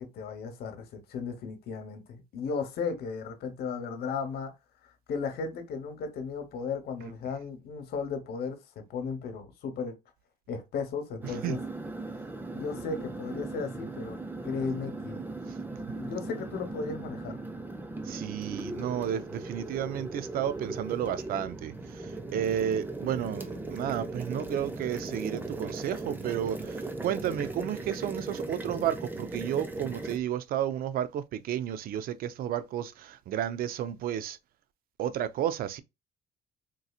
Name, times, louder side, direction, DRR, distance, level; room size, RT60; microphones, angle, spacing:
voice 1, 0.0-4.5 5.1-10.0 10.5-11.6 12.5-15.2 15.9-17.4, left 5 dB, 70° left, 1.0 m, -35 dB
sound 1, 11.2-30.2, right 2 dB, 10° right, 0.5 m, -38 dB
voice 2, 18.1-34.4 35.0-35.8, right 10 dB, 60° right, 0.5 m, -32 dB
3.8 x 2.7 x 2.4 m
cardioid pair, 110°, 17 cm